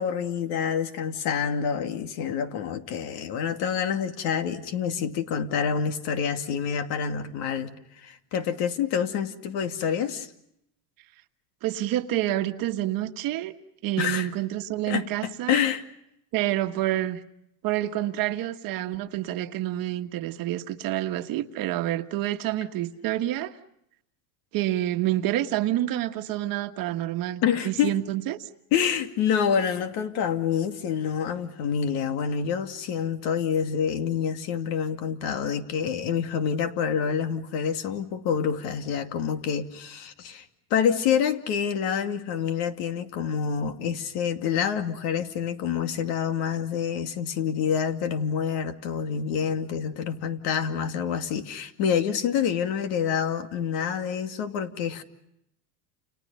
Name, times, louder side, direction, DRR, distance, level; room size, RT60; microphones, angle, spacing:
voice 1, 0.0-7.7 8.0-10.3 14.0-14.3 14.9-15.8 27.4-27.9 28.7-40.4 40.7-55.0, left 7 dB, 55° left, 2.5 m, -27 dB
voice 2, 11.6-13.5 13.8-15.7 16.3-17.2 17.6-23.5 24.5-28.5, right 14 dB, 45° right, 1.6 m, -28 dB
30.0 x 29.5 x 5.5 m
supercardioid pair, 140°, 46 cm